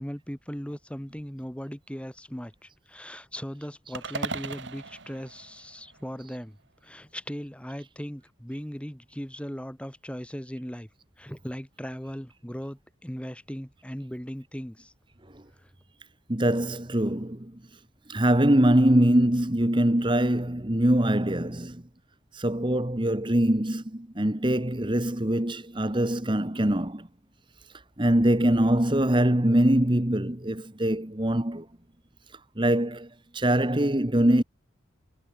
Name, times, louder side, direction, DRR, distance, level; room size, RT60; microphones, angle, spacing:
voice 1, 0.0-6.6 6.8-10.9 11.2-14.9 15.6-15.7, equal, 5° left, 2.2 m, -38 dB
sound 1, 3.9-6.3, right 3 dB, 65° right, 2.8 m, -37 dB
voice 2, 16.3-17.6 18.1-21.8 22.3-27.1 28.0-31.7 32.6-34.4, right 1 dB, 25° right, 1.5 m, -23 dB
head